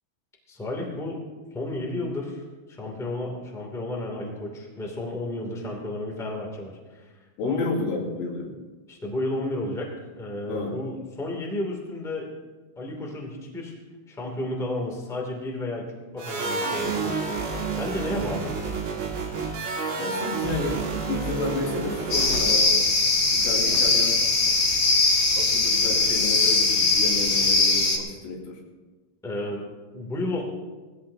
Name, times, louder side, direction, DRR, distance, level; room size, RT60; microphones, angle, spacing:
voice 1, 0.5-1.2 1.5-7.1 7.4-7.7 8.9-12.3 12.7-13.8 14.1-17.4 17.7-18.5 29.2-30.4, left 1 dB, 5° left, -1 dB, 0.5 m, -32 dB
voice 2, 7.4-8.5 10.5-10.8 20.0-20.8 21.1-22.8 23.3-24.2 25.4-28.6, left 3 dB, 90° left, -4 dB, 5.5 m, -31 dB
sound 1, 16.2-22.7, right 4 dB, 90° right, 5.1 m, -30 dB
sound 2, 22.1-28.0, left 3 dB, 50° left, 2.1 m, -21 dB
20.5 x 15.5 x 2.8 m, 1.3 s
omnidirectional pair, 5.6 m